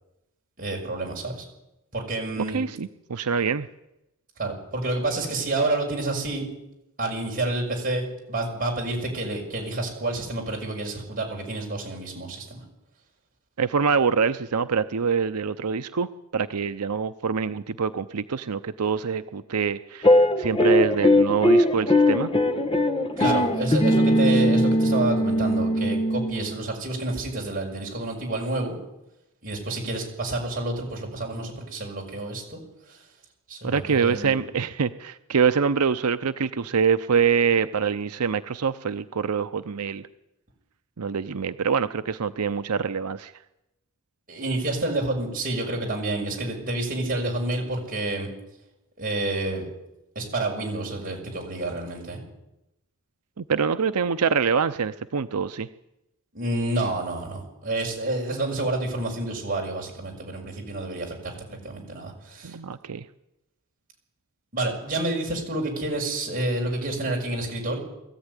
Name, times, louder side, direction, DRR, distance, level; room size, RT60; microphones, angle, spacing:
voice 1, 0.6-1.5 1.9-2.6 4.4-6.5 7.0-12.6 23.2-28.8 29.4-32.6 32.9-33.0 33.5-34.4 44.3-48.3 49.0-49.7 50.1-52.2 56.3-62.6 64.5-67.8, right 2 dB, 40° right, -1 dB, 6.4 m, -29 dB
voice 2, 2.5-3.7 13.6-22.3 33.6-40.0 41.0-43.3 53.4-55.7 62.4-63.1, right 6 dB, 85° right, 11 dB, 0.7 m, -25 dB
sound 1, 20.0-26.6, left 1 dB, 25° left, 1.2 m, -20 dB
22.0 x 14.5 x 9.8 m, 0.91 s
head